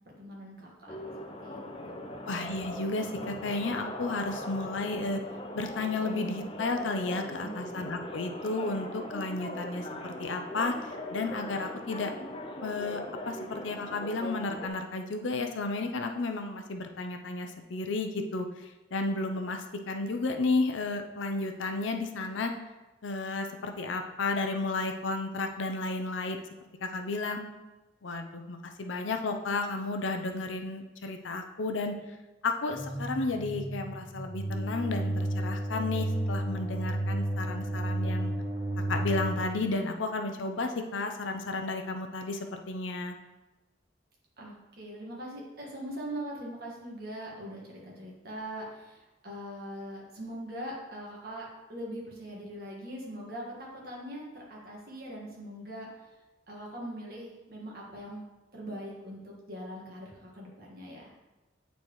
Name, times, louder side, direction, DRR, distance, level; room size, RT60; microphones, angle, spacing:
voice 1, 0.2-1.0 1.4-2.1 7.4-7.5 44.4-55.9 56.5-58.2 58.5-61.1, equal, 50° right, -3 dB, 1.6 m, -41 dB
sound 1, 0.9-14.7, left 1 dB, 30° left, 0.6 m, -40 dB
voice 2, 2.3-5.2 5.5-10.7 11.1-12.1 12.6-13.0 13.2-18.5 18.9-22.5 23.0-26.4 26.8-27.4 28.0-31.9 32.4-38.3 38.9-43.1, left 3 dB, 80° left, 5 dB, 0.6 m, -32 dB
sound 2, 32.7-39.4, right 1 dB, 15° right, 0.7 m, -32 dB
8.7 x 4.1 x 3.1 m, 1.1 s
head